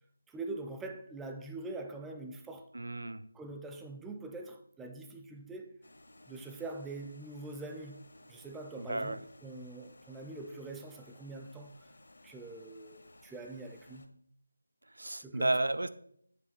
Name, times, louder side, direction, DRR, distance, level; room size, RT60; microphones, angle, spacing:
voice 1, 0.3-2.7 3.3-5.8 6.2-11.8 12.2-14.1 15.2-15.5, right 2 dB, 5° right, 0.4 m, -44 dB
voice 2, 2.7-3.2 8.8-9.2 14.9-15.9, right 2 dB, 75° right, 0.5 m, -32 dB
sound 1, 5.8-14.1, left 2 dB, 65° left, 0.9 m, -58 dB
7.6 x 3.0 x 5.9 m
figure-of-eight pair, 165°, 0 cm